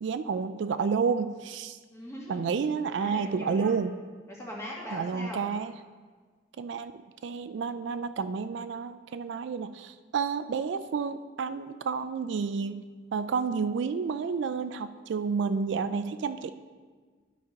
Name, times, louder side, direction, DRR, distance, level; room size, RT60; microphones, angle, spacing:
voice 1, 0.0-1.8 2.3-3.9 4.9-5.7 6.6-6.9 7.2-12.8 13.1-16.5, right 5 dB, 70° right, 11 dB, 0.3 m, -30 dB
voice 2, 1.9-2.4 3.0-3.7 4.3-5.4, equal, 15° left, -4 dB, 1.6 m, -40 dB
12.0 x 4.2 x 5.3 m, 1.5 s
head